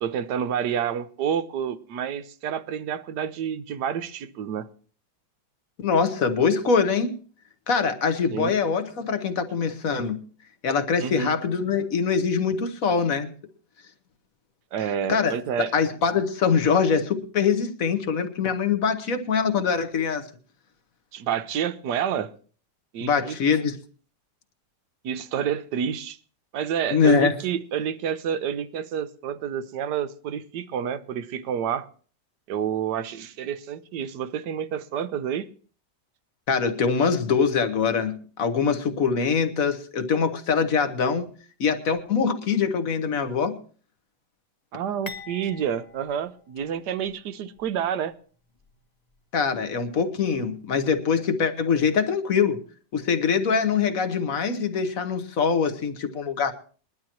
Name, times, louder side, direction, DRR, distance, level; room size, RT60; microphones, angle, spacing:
voice 1, 0.0-4.7 8.3-8.5 11.0-11.3 14.7-15.8 21.1-22.3 22.9-23.4 25.0-26.2 26.5-31.9 32.5-35.5 44.7-48.1, right 8 dB, 70° right, 1.3 m, -29 dB
voice 2, 5.8-7.2 7.7-10.2 10.6-13.3 15.1-15.4 15.7-20.2 23.0-23.8 26.9-27.3 36.5-41.3 41.6-43.6 49.3-52.6 52.9-56.5, left 6 dB, 50° left, 1.5 m, -23 dB
sound 1, 45.1-47.2 47.6-47.7 48.6-48.8, left 4 dB, 25° left, 1.0 m, -44 dB
21.5 x 11.5 x 3.0 m
omnidirectional pair, 1.9 m